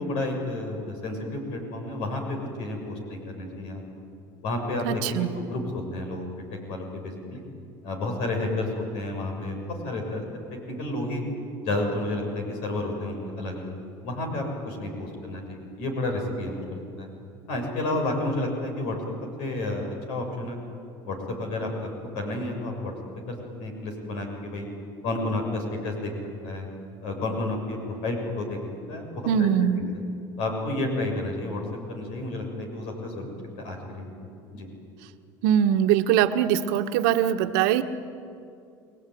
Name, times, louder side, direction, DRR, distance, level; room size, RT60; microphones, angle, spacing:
voice 1, 0.0-3.8 4.4-6.3 6.7-7.4 7.8-10.2 10.5-11.2 11.6-13.7 14.0-17.1 17.5-19.0 19.4-20.6 21.0-21.9 22.1-22.9 23.3-24.7 25.0-26.1 26.4-26.7 27.0-28.6 28.9-29.8 30.4-31.6 31.9-33.3 33.6-34.3 34.5-34.7, left 2 dB, 70° left, 3 dB, 6.8 m, -31 dB
voice 2, 4.8-5.3 29.3-29.8 35.4-37.8, right 10 dB, 75° right, 8 dB, 1.5 m, -22 dB
29.5 x 20.5 x 9.5 m, 2.5 s
supercardioid pair, 100°, 11 cm